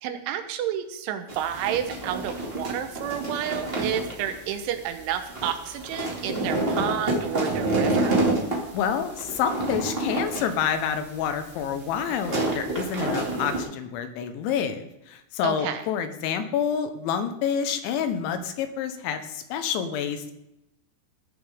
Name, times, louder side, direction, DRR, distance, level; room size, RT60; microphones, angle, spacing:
voice 1, 0.0-8.2 15.4-15.8, right 9 dB, 80° right, 8 dB, 3.5 m, -30 dB
sound 1, 1.3-13.6, right 2 dB, 35° right, 0.8 m, -28 dB
voice 2, 8.7-20.3, left 8 dB, 80° left, 8 dB, 3.3 m, -28 dB
16.5 x 11.0 x 3.6 m, 0.88 s
omnidirectional pair, 5.4 m